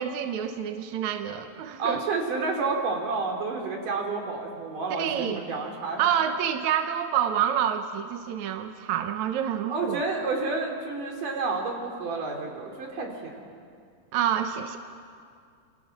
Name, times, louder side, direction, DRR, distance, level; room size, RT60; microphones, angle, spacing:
voice 1, 0.0-2.0 5.0-5.4 6.0-10.0 14.1-14.8, right 9 dB, 70° right, 7 dB, 1.8 m, -28 dB
voice 2, 1.8-6.0 9.7-13.4, right 3 dB, 55° right, 1 dB, 4.7 m, -30 dB
28.0 x 28.0 x 6.0 m, 2.2 s
omnidirectional pair, 4.7 m